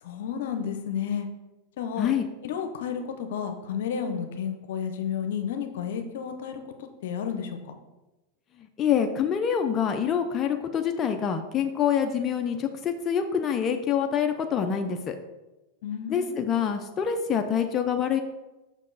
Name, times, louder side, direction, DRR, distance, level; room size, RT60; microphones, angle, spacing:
voice 1, 0.0-1.3 1.8-2.1 2.4-7.7 15.8-16.4, left 7 dB, 70° left, 7 dB, 0.7 m, -32 dB
voice 2, 8.8-15.2 16.1-18.2, left 8 dB, 30° left, 5 dB, 0.5 m, -26 dB
6.2 x 4.5 x 4.0 m, 1.0 s
hypercardioid pair, 110°, 0 cm